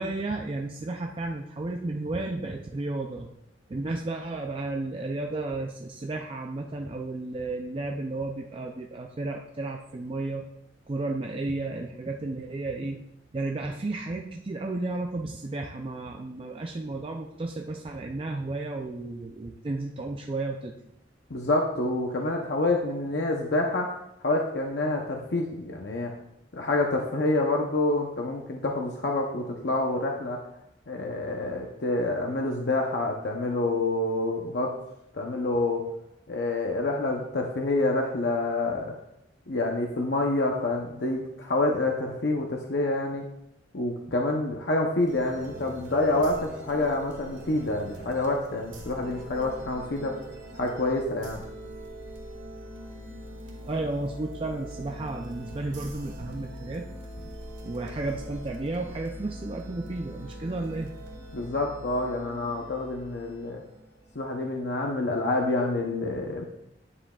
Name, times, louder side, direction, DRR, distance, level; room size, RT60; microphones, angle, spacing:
voice 1, 0.0-3.3 3.7-10.5 10.9-13.0 13.3-20.7 53.6-56.8 57.6-60.9, right 2 dB, 30° right, 2 dB, 0.4 m, -33 dB
voice 2, 21.3-24.0 24.2-26.1 26.5-30.4 30.9-34.7 35.1-35.8 36.3-38.9 39.5-43.2 43.7-50.2 50.5-51.4 61.3-63.6 64.1-66.5, left 2 dB, 60° left, 1 dB, 0.7 m, -27 dB
sound 1, 45.1-64.3, equal, 75° right, 2.1 m, -42 dB
9.7 x 7.6 x 2.3 m, 0.81 s
head